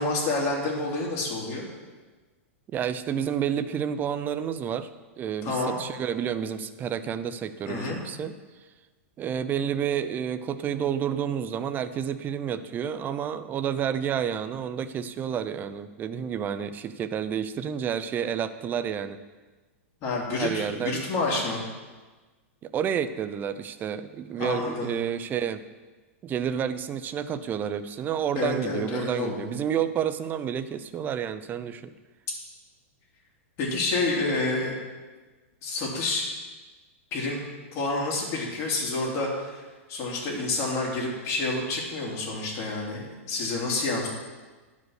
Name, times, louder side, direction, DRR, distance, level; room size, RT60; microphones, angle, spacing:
voice 1, 0.0-1.7 5.4-5.8 7.7-8.0 20.0-21.6 24.4-24.9 28.3-29.5 33.6-34.8 35.6-36.2 37.1-37.4 37.7-39.6 39.9-44.1, left 3 dB, 40° left, -2 dB, 3.0 m, -28 dB
voice 2, 2.7-4.9 5.2-8.3 9.2-19.2 20.3-21.0 22.6-25.6 26.2-31.9, right 8 dB, 25° right, 11 dB, 0.5 m, -30 dB
11.0 x 5.3 x 6.4 m, 1.3 s
hypercardioid pair, 130°, 8 cm